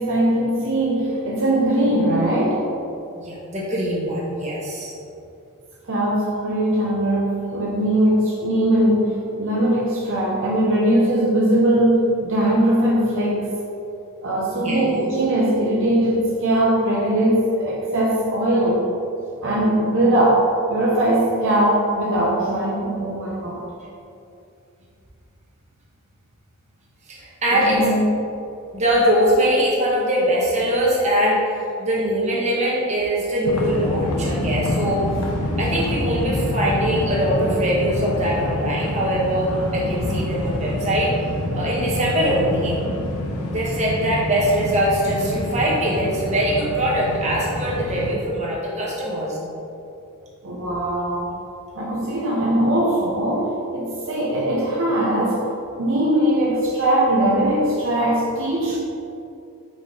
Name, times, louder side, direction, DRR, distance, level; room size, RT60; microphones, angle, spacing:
voice 1, 0.0-2.7 5.9-13.5 14.2-18.8 19.4-23.6 27.5-28.0 50.4-51.3 51.7-55.4 55.8-58.8, right 1 dB, 60° right, -5 dB, 0.8 m, -20 dB
voice 2, 3.1-4.9 14.6-14.8 27.1-27.9 28.7-35.0 35.6-41.1 41.5-42.8 43.5-49.4, equal, 30° right, -5 dB, 1.3 m, -22 dB
sound 1, 33.4-48.1, left 1 dB, 85° left, 0.7 m, -27 dB
5.2 x 5.1 x 3.9 m, 2.6 s
head